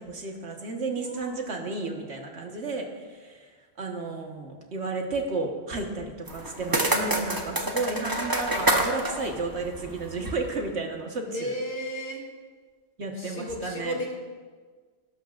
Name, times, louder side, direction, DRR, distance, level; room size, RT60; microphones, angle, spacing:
voice 1, 0.0-3.4 3.8-11.5 13.0-14.0, right 3 dB, 85° right, 1 dB, 1.7 m, -32 dB
voice 2, 0.9-1.6 11.3-12.3 13.0-14.1, equal, 65° left, 0 dB, 2.5 m, -35 dB
sound 1, 6.3-10.5, right 1 dB, 20° right, 1.1 m, -28 dB
18.0 x 12.0 x 2.5 m, 1.5 s
omnidirectional pair, 1.1 m